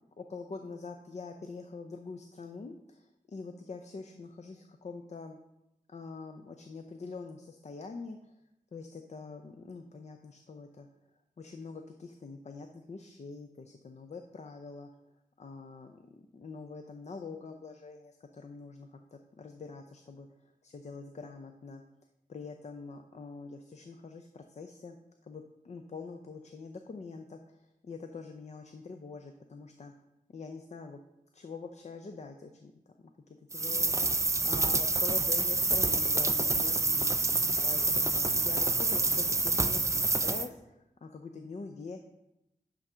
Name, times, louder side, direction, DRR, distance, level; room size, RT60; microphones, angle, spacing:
voice 1, 0.2-5.4 5.9-8.3 8.7-10.9 11.4-14.9 15.4-20.3 20.6-21.8 22.3-25.0 25.2-29.9 30.3-31.0 31.3-32.7 33.5-37.1 37.6-42.0, left 4 dB, 50° left, 6 dB, 0.6 m, -44 dB
sound 1, 33.5-40.5, right 3 dB, 20° right, 0.4 m, -27 dB
10.5 x 3.8 x 5.6 m, 0.88 s
wide cardioid pair, 95°, 15 cm